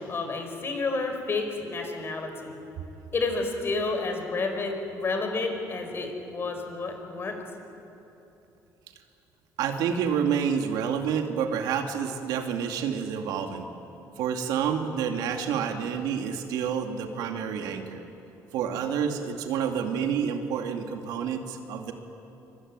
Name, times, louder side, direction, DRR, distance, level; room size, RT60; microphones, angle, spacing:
voice 1, 0.0-2.5 3.1-7.4, left 3 dB, 35° left, 5 dB, 5.3 m, -30 dB
voice 2, 9.6-13.7 14.2-18.0 18.5-21.9, right 7 dB, 85° right, 4 dB, 2.5 m, -28 dB
24.5 x 24.0 x 9.7 m, 2.9 s
cardioid pair, 110°, 7 cm